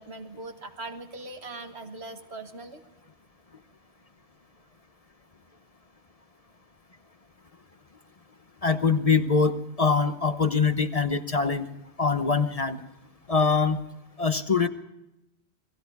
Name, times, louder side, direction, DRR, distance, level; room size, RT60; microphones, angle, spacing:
voice 1, 0.0-2.8, right 2 dB, 80° right, 6 dB, 1.9 m, -40 dB
voice 2, 8.6-11.7 12.0-12.8 13.3-13.8 14.2-14.7, left 5 dB, 35° left, 9 dB, 0.9 m, -23 dB
28.5 x 19.5 x 4.7 m, 0.93 s
omnidirectional pair, 1.1 m